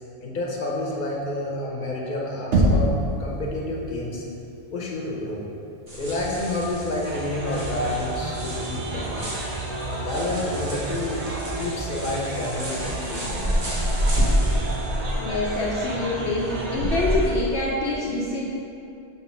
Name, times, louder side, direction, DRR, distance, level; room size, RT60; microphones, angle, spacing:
voice 1, 0.2-2.9 3.2-4.2 4.7-5.4 5.9-9.4 9.9-11.3 11.6-13.5, left 1 dB, 45° left, -3 dB, 1.1 m, -29 dB
Knock, 2.5-3.2, right 1 dB, 75° right, 1.1 m, -19 dB
sound 1, 5.9-17.2, equal, 55° right, 1.7 m, -29 dB
sound 2, 7.0-17.3, right 2 dB, 40° right, 0.6 m, -32 dB
voice 2, 15.2-18.5, left 2 dB, 65° left, -5 dB, 1.0 m, -26 dB
6.0 x 4.0 x 5.5 m, 2.6 s
omnidirectional pair, 1.2 m